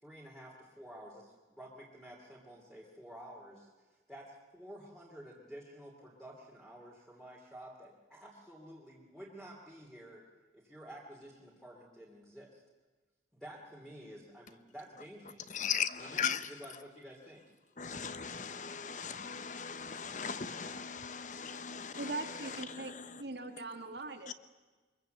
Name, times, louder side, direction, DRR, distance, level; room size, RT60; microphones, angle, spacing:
voice 1, 0.0-3.7 4.1-10.2 10.5-12.6 13.3-15.6 16.0-16.2 16.5-17.5, equal, ahead, 3.0 m, -51 dB
voice 2, 15.5-16.5 17.8-23.2 24.3-24.4, left 7 dB, 45° left, 1.0 m, -38 dB
voice 3, 21.4-24.3, right 2 dB, 70° right, 1.8 m, -42 dB
24.0 x 22.5 x 7.9 m
head